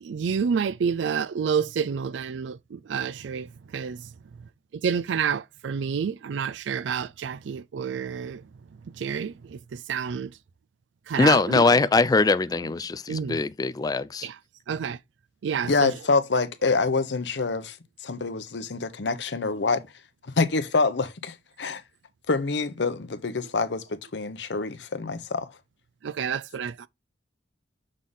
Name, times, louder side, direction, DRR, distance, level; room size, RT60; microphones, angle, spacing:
voice 1, 0.0-4.0 4.8-8.4 9.0-10.3 11.1-11.7 13.1-13.4 14.2-14.3 14.7-15.0 15.4-15.9 26.0-26.9, right 6 dB, 90° right, 0.4 m, -29 dB
voice 2, 11.2-14.3, left 3 dB, 20° left, 0.3 m, -22 dB
voice 3, 15.7-17.8 18.0-19.8 20.4-21.8 22.3-25.4, left 3 dB, 75° left, 0.8 m, -26 dB
6.4 x 3.8 x 3.9 m
head